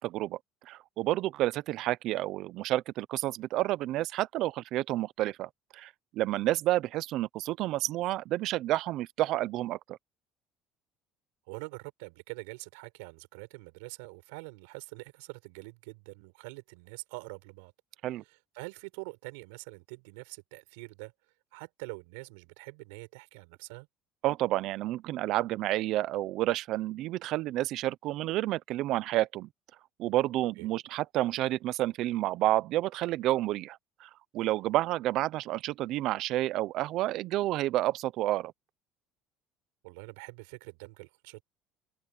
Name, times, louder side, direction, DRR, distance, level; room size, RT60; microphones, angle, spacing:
voice 1, 0.7-10.0 18.0-18.2 24.2-29.5 30.0-38.5, right 15 dB, 65° right, 0.8 m, -30 dB
voice 2, 11.5-17.7 18.3-21.1 21.5-23.9 30.6-30.7 39.8-41.4, right 28 dB, 90° right, 4.9 m, -45 dB
open air
supercardioid pair, 105°, 0 cm